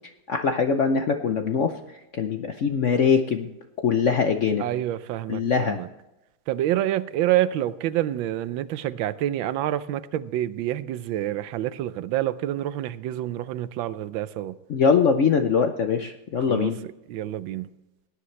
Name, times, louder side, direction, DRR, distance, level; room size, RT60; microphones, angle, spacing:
voice 1, 0.3-3.5 3.8-4.6 5.3-5.8 14.7-16.8, left 6 dB, 65° left, 6 dB, 0.7 m, -22 dB
voice 2, 4.6-5.9 6.5-14.6 16.5-16.7 17.1-17.7, right 13 dB, 85° right, 15 dB, 1.4 m, -27 dB
17.5 x 10.5 x 3.2 m, 0.95 s
omnidirectional pair, 2.1 m